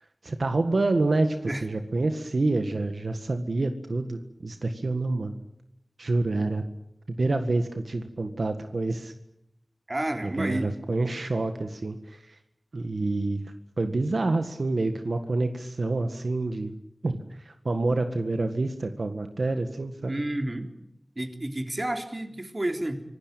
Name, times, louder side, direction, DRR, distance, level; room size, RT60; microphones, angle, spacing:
voice 1, 0.2-5.3 6.0-6.6 7.2-9.1 10.2-12.4 12.7-16.8 17.0-20.2, right 2 dB, 85° right, 7 dB, 1.8 m, -27 dB
voice 2, 9.9-10.7 20.1-20.7 21.2-23.0, right 1 dB, 40° right, 6 dB, 3.6 m, -30 dB
25.5 x 18.0 x 9.1 m, 0.78 s
wide cardioid pair, 45°, 0 cm